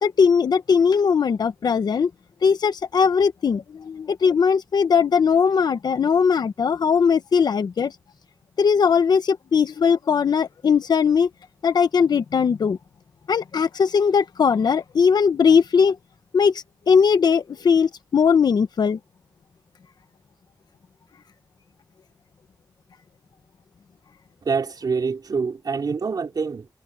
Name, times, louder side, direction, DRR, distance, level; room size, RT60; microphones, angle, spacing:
voice 1, 0.0-2.1 2.4-7.9 8.6-11.3 11.6-12.8 13.3-15.9 16.3-16.5 16.9-19.0, left 6 dB, 90° left, 1.2 m, -19 dB
voice 2, 24.4-26.7, right 5 dB, 75° right, 3.7 m, -26 dB
cardioid pair, 55°, 7 cm